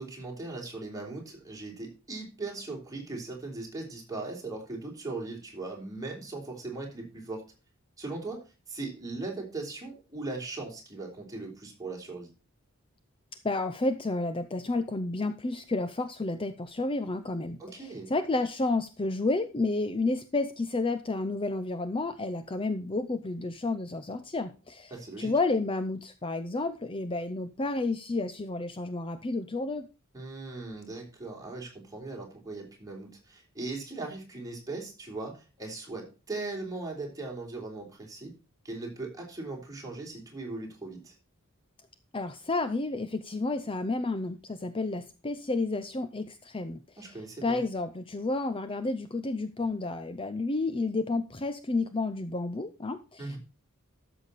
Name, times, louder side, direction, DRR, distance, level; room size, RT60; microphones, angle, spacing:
voice 1, 0.0-7.4 8.0-12.3 17.6-18.1 24.9-25.3 30.1-38.3 38.6-41.1 47.0-47.6 53.2-53.4, right 3 dB, 15° right, -1 dB, 3.5 m, -39 dB
voice 2, 13.4-24.9 25.2-29.9 42.1-47.1 47.4-53.4, left 2 dB, 25° left, 10 dB, 0.6 m, -31 dB
13.0 x 7.0 x 4.1 m, 0.32 s
head